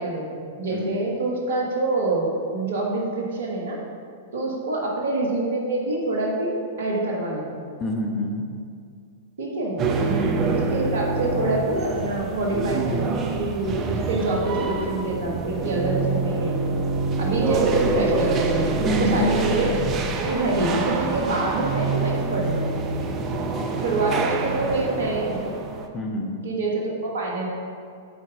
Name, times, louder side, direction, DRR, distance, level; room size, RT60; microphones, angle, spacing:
voice 1, 0.0-3.8 4.3-7.6 9.4-9.8 10.5-16.6 17.2-18.5 18.8-19.7 20.2-22.8 23.8-25.4 26.4-27.5, right 2 dB, 60° right, -1 dB, 1.2 m, -26 dB
voice 2, 7.8-8.4 9.8-10.1 18.8-19.2 23.3-23.7 25.8-26.3, equal, 20° left, 0 dB, 0.9 m, -28 dB
sound 1, 9.8-25.9, right 4 dB, 30° right, 0.5 m, -26 dB
7.1 x 4.5 x 3.7 m, 2.2 s
figure-of-eight pair, 100°, 0 cm